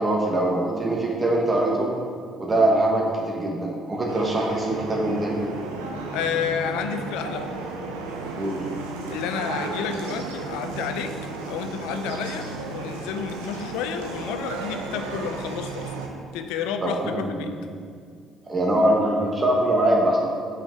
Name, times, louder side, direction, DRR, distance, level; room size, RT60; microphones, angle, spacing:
voice 1, 0.0-1.9 2.4-5.4 8.4-8.6 16.8-16.9 17.2-17.3 18.5-20.2, right 1 dB, 30° right, -2 dB, 1.3 m, -22 dB
sound 1, 4.1-16.1, right 3 dB, 85° right, 0.7 m, -34 dB
voice 2, 6.1-7.5 9.1-11.2 11.5-16.0 16.3-17.5, left 7 dB, 75° left, 8 dB, 0.4 m, -30 dB
5.8 x 4.9 x 4.5 m, 2.1 s
hypercardioid pair, 55°, 0 cm